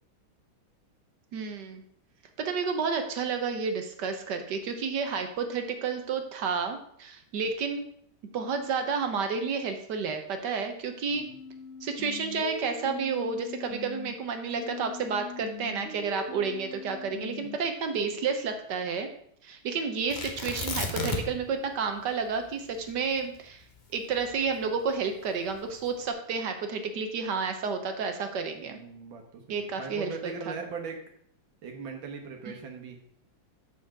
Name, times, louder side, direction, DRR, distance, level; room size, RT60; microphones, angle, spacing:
voice 1, 1.3-1.8 2.4-7.8 8.3-11.2 11.8-19.1 19.4-23.6 23.9-28.8 29.5-30.3, right 5 dB, 65° right, 6 dB, 1.5 m, -31 dB
sound 1, 11.1-14.1 14.6-17.6, left 6 dB, 50° left, 1.3 m, -42 dB
Tearing, 20.1-21.5 21.8-21.9 22.4-24.8 25.5-26.0, left 2 dB, 30° left, 0.9 m, -34 dB
voice 2, 28.6-31.0 31.6-33.0, right 5 dB, 85° right, 3 dB, 2.1 m, -40 dB
6.9 x 6.3 x 5.8 m, 0.66 s
omnidirectional pair, 2.1 m